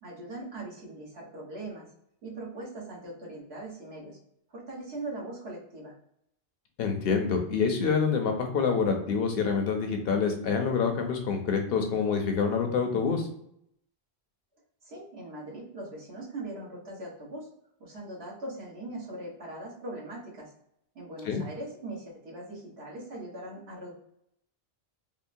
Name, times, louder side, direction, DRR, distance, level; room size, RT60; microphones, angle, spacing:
voice 1, 0.0-1.9 2.2-4.2 4.5-5.9 14.8-17.5 17.8-20.5 20.9-23.9, right 2 dB, 70° right, -4 dB, 1.4 m, -40 dB
voice 2, 6.8-13.3 21.2-21.4, left 5 dB, 65° left, 4 dB, 0.8 m, -27 dB
3.6 x 2.1 x 2.6 m, 0.74 s
omnidirectional pair, 1.1 m